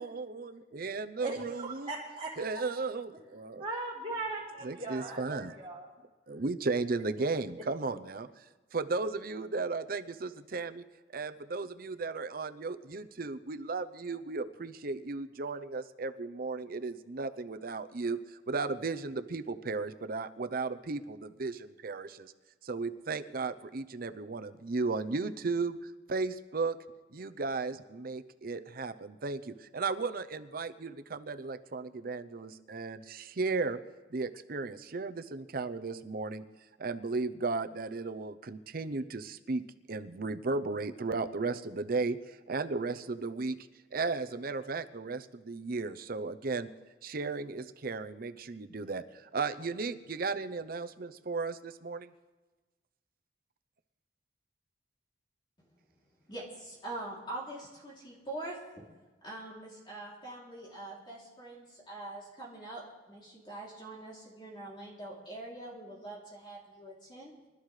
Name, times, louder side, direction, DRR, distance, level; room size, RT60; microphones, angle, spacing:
voice 1, 0.0-1.9 2.4-3.6 4.6-5.5 6.3-8.5 8.7-10.8 11.1-22.3 22.6-26.8 27.1-33.8 34.1-36.4 36.8-39.6 39.9-46.7 47.0-52.1, right 3 dB, 55° right, 10 dB, 0.7 m, -35 dB
voice 2, 1.2-2.3 3.6-5.9 7.5-7.6, right 2 dB, 30° right, -10 dB, 3.6 m, -38 dB
voice 3, 56.3-58.8 59.2-67.3, right 2 dB, 25° left, -5 dB, 3.0 m, -44 dB
24.5 x 13.0 x 3.3 m, 1.2 s
head